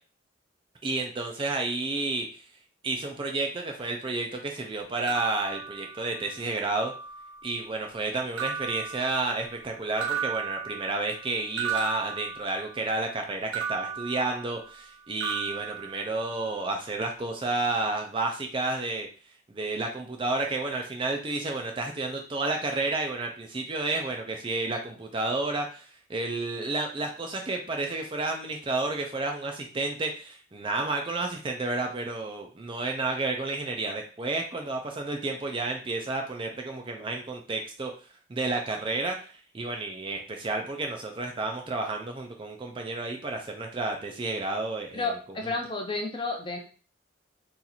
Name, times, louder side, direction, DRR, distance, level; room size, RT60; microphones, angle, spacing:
voice 1, 0.8-2.4 2.8-6.9 7.4-19.1 19.5-37.9 38.3-45.1, right 2 dB, 25° right, 2 dB, 0.4 m, -31 dB
sound 1, 5.1-6.3 6.7-7.5 8.4-9.6 10.0-12.9 13.5-14.9 15.2-16.5, right 7 dB, 70° right, 0.7 m, -35 dB
voice 2, 44.9-46.6, left 3 dB, 25° left, 2 dB, 0.6 m, -31 dB
2.9 x 2.5 x 3.9 m, 0.38 s
head